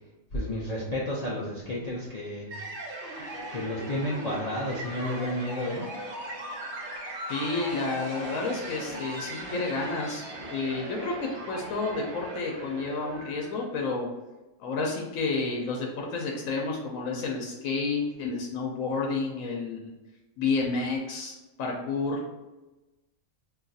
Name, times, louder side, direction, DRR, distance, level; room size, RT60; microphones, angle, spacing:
voice 1, 0.3-2.6 3.5-5.9, left 1 dB, 60° left, -6 dB, 0.4 m, -31 dB
sound 1, 2.5-13.7, right 1 dB, 65° right, 0.9 m, -38 dB
voice 2, 7.3-10.2 10.5-14.1 14.6-19.9 20.4-22.2, left 3 dB, 85° left, 0 dB, 1.0 m, -30 dB
2.6 x 2.3 x 3.9 m, 1.1 s
omnidirectional pair, 1.4 m